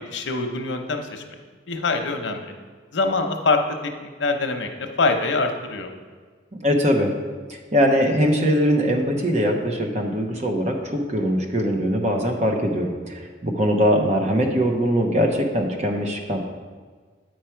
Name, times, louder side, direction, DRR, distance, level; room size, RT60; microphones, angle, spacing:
voice 1, 0.1-1.2 1.7-2.5 2.9-4.7 5.0-5.9, left 3 dB, 90° left, 5 dB, 0.8 m, -24 dB
voice 2, 6.6-7.1 7.5-16.4, equal, 40° right, 2 dB, 0.9 m, -21 dB
9.0 x 4.8 x 4.5 m, 1.5 s
head